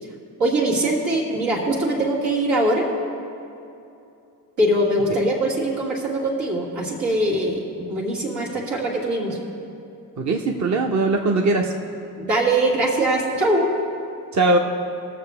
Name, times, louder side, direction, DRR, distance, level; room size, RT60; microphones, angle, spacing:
voice 1, 0.4-2.9 4.6-9.4 12.2-13.7, right 1 dB, 80° right, -5 dB, 2.2 m, -22 dB
voice 2, 10.2-11.7 14.3-14.6, right 2 dB, 40° right, 1 dB, 0.9 m, -20 dB
18.0 x 6.9 x 3.4 m, 2.6 s
hypercardioid pair, 45°, 43 cm